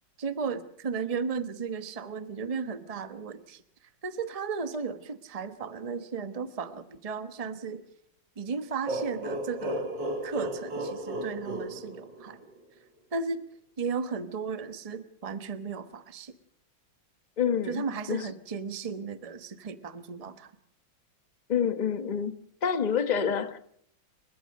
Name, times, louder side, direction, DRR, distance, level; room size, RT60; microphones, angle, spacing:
voice 1, 0.2-3.6 4.0-7.8 8.4-9.9 10.2-12.5 13.1-13.4 13.8-16.3 17.7-20.5, right 5 dB, 25° right, 0.9 m, -35 dB
sound 1, 8.9-12.6, right 1 dB, 60° right, 2.8 m, -34 dB
voice 2, 17.4-18.3 21.5-22.3 22.6-23.6, left 7 dB, 30° left, 0.9 m, -27 dB
30.0 x 15.0 x 6.5 m
omnidirectional pair, 2.2 m